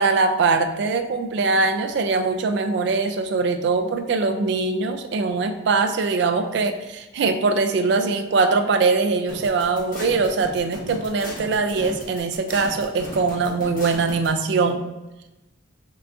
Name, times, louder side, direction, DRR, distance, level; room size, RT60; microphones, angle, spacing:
voice 1, 0.0-14.8, right 4 dB, 60° right, 7 dB, 0.3 m, -22 dB
sound 1, 9.3-14.3, left 1 dB, 45° left, 0.9 m, -36 dB
3.7 x 2.4 x 3.4 m, 1.0 s
head